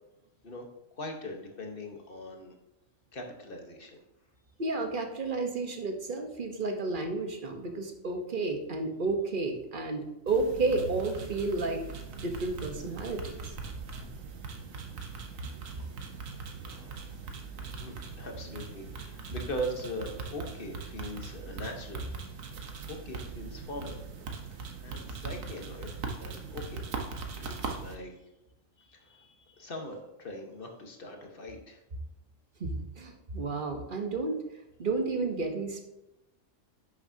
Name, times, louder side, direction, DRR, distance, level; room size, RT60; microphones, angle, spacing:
voice 1, 0.9-2.5 3.1-4.0 16.6-17.2 17.8-22.1 22.4-24.0 24.8-25.9 26.2-26.8 27.4-28.1 28.8-31.8, equal, 45° left, 3 dB, 1.3 m, -41 dB
voice 2, 4.6-11.8 12.2-13.3 32.6-34.4 34.8-35.8, right 3 dB, 45° right, 4 dB, 1.1 m, -31 dB
sound 1, 10.3-27.9, right 4 dB, 90° right, 1.3 m, -40 dB
10.5 x 6.6 x 2.7 m, 0.94 s
omnidirectional pair, 1.3 m